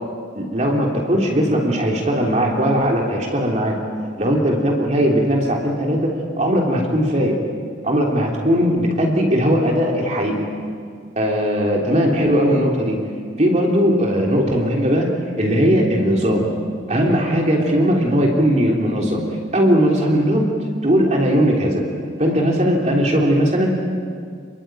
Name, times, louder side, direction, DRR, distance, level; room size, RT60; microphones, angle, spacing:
voice 1, 0.3-3.8 4.2-6.1 6.4-7.4 7.8-10.4 11.2-13.0 13.4-15.1 15.4-16.5 16.9-19.2 19.5-20.5 20.8-21.8 22.2-23.7, equal, 35° right, -1 dB, 3.4 m, -18 dB
29.0 x 22.5 x 9.1 m, 2.1 s
head